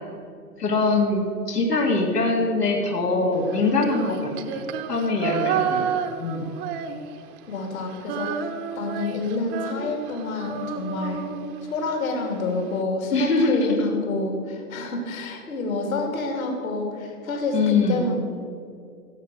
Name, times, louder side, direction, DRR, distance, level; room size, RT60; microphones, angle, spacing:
voice 1, 0.6-5.9 6.2-6.5 13.1-13.8 17.5-18.0, left 3 dB, 90° left, -1 dB, 2.8 m, -23 dB
Female singing, 3.5-7.4 7.7-12.0, right 7 dB, 20° right, 0.7 m, -30 dB
voice 2, 7.5-11.2 11.7-18.1, left 3 dB, 65° left, 3 dB, 3.0 m, -28 dB
16.5 x 7.4 x 7.9 m, 2.4 s
hypercardioid pair, 130°, 46 cm